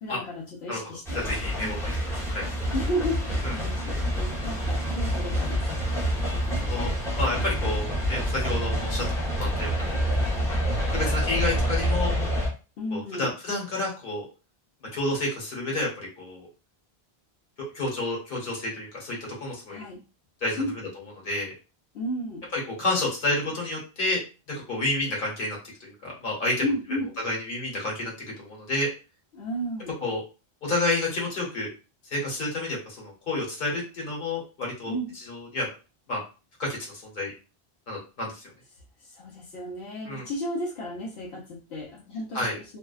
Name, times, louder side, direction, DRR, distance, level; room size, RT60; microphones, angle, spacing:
voice 1, 0.0-1.2 1.6-1.8 2.7-5.8 12.8-13.3 19.7-20.0 20.6-20.8 21.9-22.5 26.6-27.2 29.3-29.9 34.8-35.1 39.1-42.8, equal, 80° left, -5 dB, 1.0 m, -33 dB
voice 2, 1.1-2.1 2.3-2.5 3.4-3.5 5.8-6.0 6.6-10.1 10.9-12.1 12.9-14.3 14.9-16.5 17.7-19.8 20.4-20.6 21.2-21.5 22.5-24.2 24.5-26.6 27.2-28.9 30.0-30.2 30.6-31.7 32.1-34.9 35.3-35.7 36.1-36.2 36.6-36.8 37.0-37.3 37.9-38.4 40.0-40.3 42.3-42.5, left 2 dB, 60° left, -2 dB, 1.2 m, -30 dB
sound 1, 1.1-12.5, equal, 5° left, 0.7 m, -27 dB
2.6 x 2.1 x 2.3 m, 0.32 s
omnidirectional pair, 1.1 m